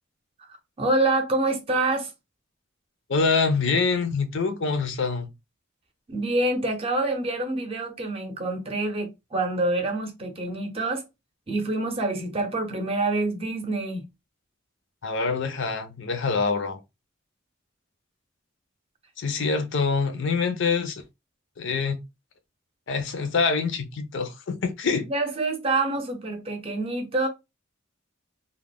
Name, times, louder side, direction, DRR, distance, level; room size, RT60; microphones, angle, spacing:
voice 1, 0.8-2.1 6.1-11.0 11.5-14.0 25.1-27.3, right 2 dB, 30° right, 0.6 m, -26 dB
voice 2, 3.1-5.3 15.0-16.8 19.2-21.0 21.6-22.0 22.9-25.1, left 4 dB, 65° left, 0.5 m, -25 dB
2.3 x 2.1 x 3.4 m
head